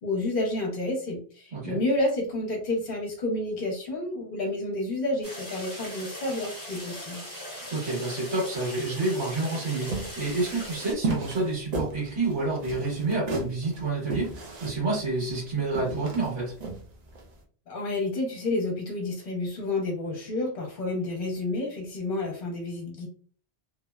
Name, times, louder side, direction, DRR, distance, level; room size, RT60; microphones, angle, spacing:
voice 1, 0.0-7.2 17.7-23.1, left 2 dB, 50° left, -1 dB, 0.9 m, -30 dB
voice 2, 1.5-1.8 7.5-16.5, right 3 dB, 85° right, -6 dB, 1.4 m, -29 dB
sound 1, 5.2-10.9, equal, 20° left, 0.9 m, -40 dB
sound 2, 9.9-17.3, right 3 dB, 55° right, 0.5 m, -34 dB
2.9 x 2.0 x 2.2 m, 0.44 s
omnidirectional pair, 1.2 m